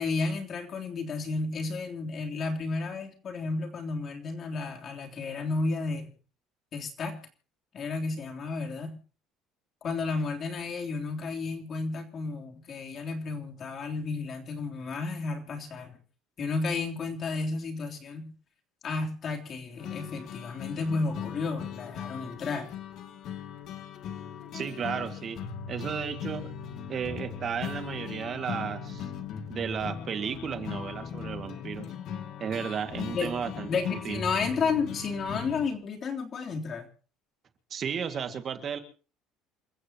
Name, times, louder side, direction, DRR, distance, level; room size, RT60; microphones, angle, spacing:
voice 1, 0.0-6.1 6.7-7.2 7.7-9.0 9.8-16.0 16.4-18.3 18.8-22.7 33.1-33.3 33.7-36.9, left 4 dB, 40° left, 2 dB, 3.5 m, -32 dB
sound 1, 19.8-35.7, left 7 dB, 55° left, 2.4 m, -39 dB
voice 2, 24.5-25.4 25.7-26.5 26.9-29.1 29.5-31.9 32.4-34.2 37.7-38.8, right 7 dB, 40° right, 7 dB, 2.1 m, -34 dB
28.5 x 15.0 x 3.0 m, 0.38 s
cardioid pair, 125°, 0 cm